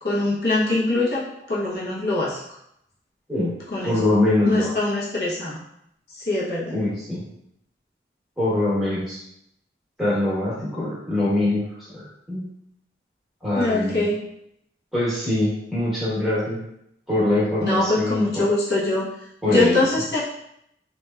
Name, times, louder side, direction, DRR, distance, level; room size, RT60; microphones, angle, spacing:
voice 1, 0.0-2.4 3.7-4.0 4.4-5.6 6.1-6.7 13.6-14.2 17.7-19.1 19.5-20.2, left 2 dB, 60° left, -7 dB, 0.7 m, -23 dB
voice 2, 3.8-4.8 6.7-7.2 8.4-9.2 10.0-12.4 13.4-14.0 14.9-16.6 17.1-18.5 19.4-19.8, left 1 dB, ahead, -9 dB, 0.9 m, -23 dB
3.1 x 2.2 x 2.2 m, 0.76 s
head